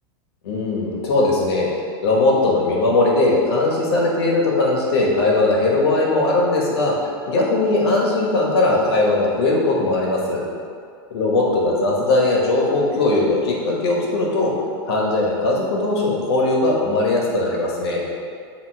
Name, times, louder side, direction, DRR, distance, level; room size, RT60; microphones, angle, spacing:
voice 1, 0.4-1.7 2.0-10.4 11.1-14.5 14.9-18.0, left 2 dB, 85° left, -3 dB, 1.7 m, -19 dB
8.5 x 3.6 x 5.0 m, 2.3 s
supercardioid pair, 160°, 13 cm